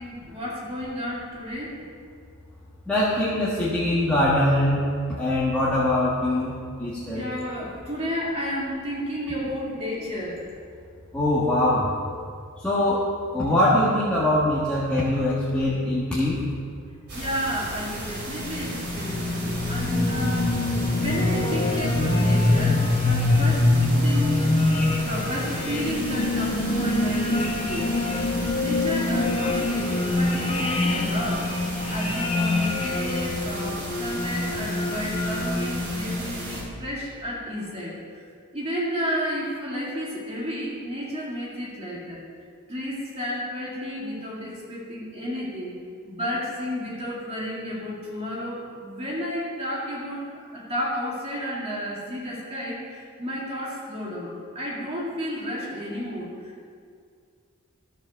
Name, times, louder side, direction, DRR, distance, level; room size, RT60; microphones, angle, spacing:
voice 1, 0.0-1.8 7.1-10.5 17.1-23.7 24.0-24.6 24.9-28.0 28.3-31.5 31.9-38.3 38.5-42.2 42.7-45.7 46.1-56.7, equal, 30° right, -5 dB, 2.2 m, -32 dB
voice 2, 2.9-4.8 5.2-7.3 11.1-11.9 12.6-16.4, left 1 dB, 5° left, -9 dB, 1.5 m, -23 dB
sound 1, 17.1-36.6, right 1 dB, 50° right, 3.0 m, -35 dB
sound 2, 18.0-36.4, left 2 dB, 30° left, 1.1 m, -25 dB
14.0 x 5.0 x 6.5 m, 2.2 s
head